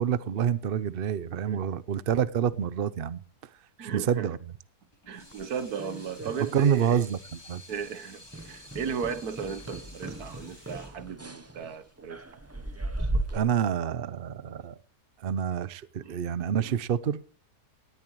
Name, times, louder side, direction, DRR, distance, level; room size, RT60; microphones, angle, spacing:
voice 1, 0.0-3.2 3.8-4.4 6.5-7.6 13.3-14.7 15.2-17.2, right 8 dB, 50° right, 0.7 m, -27 dB
voice 2, 3.8-4.4 5.1-7.0 7.7-12.2 13.0-13.5 16.0-16.2 16.6-16.7, right 6 dB, 70° right, 1.6 m, -36 dB
Water tap faucet / Sink (filling or washing), 4.9-13.0, left 1 dB, 15° left, 3.1 m, -52 dB
sound 1, 5.3-6.8 7.0-7.4 7.7-7.9 8.3-13.4, right 1 dB, 15° right, 0.5 m, -36 dB
18.5 x 13.0 x 3.1 m
omnidirectional pair, 1.7 m